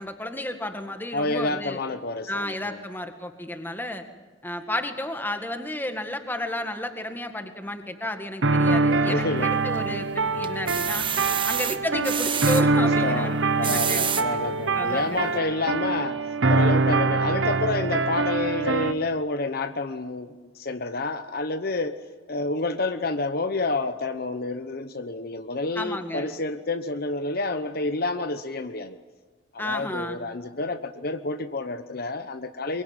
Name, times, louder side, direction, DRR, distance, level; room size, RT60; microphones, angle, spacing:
voice 1, 0.0-1.8 2.3-4.1 4.4-11.1 11.5-13.4 13.6-14.1 14.7-15.2 25.8-26.3 29.6-30.2, left 1 dB, 10° left, 6 dB, 1.9 m, -32 dB
voice 2, 1.1-2.8 9.1-9.5 11.2-11.4 12.8-16.2 16.5-22.0 22.3-29.0 29.5-32.8, left 2 dB, 50° left, 9 dB, 0.9 m, -29 dB
sound 1, 8.4-18.9, right 3 dB, 75° right, 1.0 m, -24 dB
sound 2, 9.4-10.0 10.4-12.6 13.4-14.2 14.9-15.0 15.3-15.4, right 8 dB, 25° right, 1.1 m, -28 dB
23.0 x 23.0 x 9.8 m, 1.4 s
head